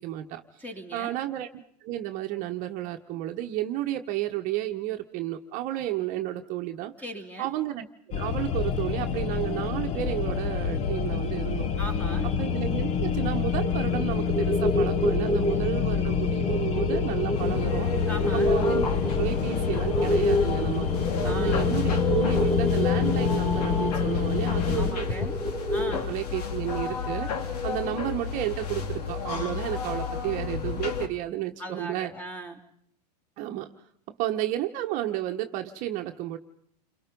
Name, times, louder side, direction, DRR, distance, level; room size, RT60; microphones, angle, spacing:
voice 1, 0.0-0.4 0.9-6.9 7.4-11.7 12.4-17.9 18.3-20.9 21.2-25.2 25.9-32.1 33.4-33.7 34.2-36.4, right 14 dB, 40° right, 5 dB, 1.2 m, -32 dB
voice 2, 0.6-1.2 7.0-7.5 11.8-12.3 18.1-18.5 21.2-21.8 24.7-25.4 25.7-26.2 31.6-32.6, right 1 dB, 5° left, 6 dB, 2.8 m, -39 dB
sound 1, 8.1-24.9, left 7 dB, 35° left, 1.3 m, -27 dB
sound 2, 13.6-26.0, equal, 25° right, 2.0 m, -29 dB
sound 3, 17.3-31.1, left 6 dB, 70° left, 2.9 m, -32 dB
29.5 x 22.5 x 5.3 m, 0.69 s
hypercardioid pair, 135°, 21 cm